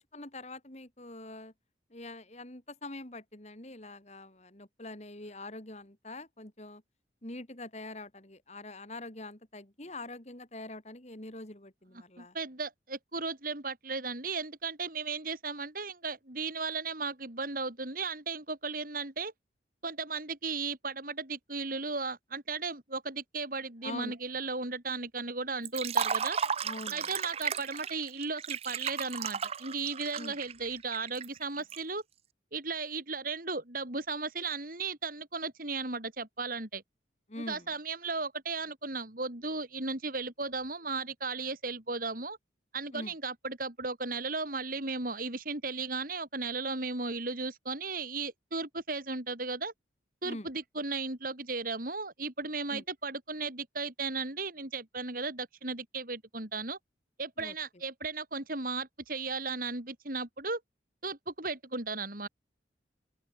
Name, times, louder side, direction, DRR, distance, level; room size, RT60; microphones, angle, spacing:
voice 1, 0.0-1.5 1.9-6.8 7.2-12.3 23.8-24.1 26.6-27.1 30.2-30.3 37.3-37.7 42.9-43.1 50.2-50.5 52.7-52.8 57.4-57.5, left 2 dB, 35° left, 3.0 m, -44 dB
voice 2, 12.2-19.3 19.8-26.4 26.9-32.0 32.5-36.8 37.4-42.4 42.7-49.7 50.2-56.8 57.2-60.6 61.0-62.3, right 4 dB, 50° right, 3.7 m, -35 dB
Liquid, 25.7-31.8, right 7 dB, 35° right, 0.5 m, -34 dB
open air
head